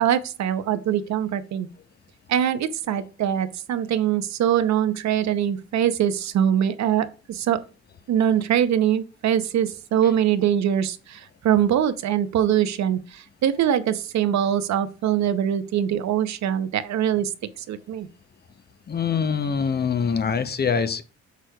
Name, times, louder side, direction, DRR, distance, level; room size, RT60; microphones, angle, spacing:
voice 1, 0.0-1.7 2.3-7.6 8.1-17.3 17.7-18.1, right 10 dB, 65° right, 0.7 m, -23 dB
voice 2, 18.9-21.0, left 6 dB, 35° left, 0.6 m, -24 dB
8.2 x 6.2 x 2.3 m
cardioid pair, 90°, 30 cm